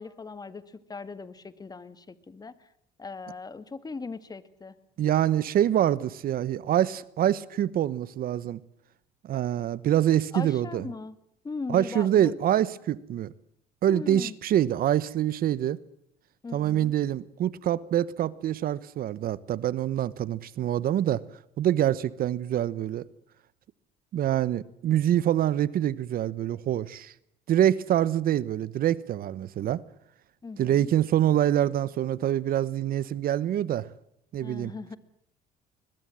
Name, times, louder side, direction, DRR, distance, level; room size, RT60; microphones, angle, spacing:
voice 1, 0.0-2.7 3.0-4.7 10.3-11.2 11.4-12.3 13.9-14.4 16.4-16.9 30.4-30.9 34.4-35.0, left 4 dB, 20° left, 1.8 m, -39 dB
voice 2, 5.0-8.6 9.2-10.9 11.7-13.3 13.8-15.8 16.5-21.2 21.6-23.0 24.1-27.1 27.5-29.8 30.6-33.9 34.3-34.7, right 11 dB, 60° right, 1.0 m, -25 dB
21.5 x 21.5 x 7.6 m
cardioid pair, 110°, 17 cm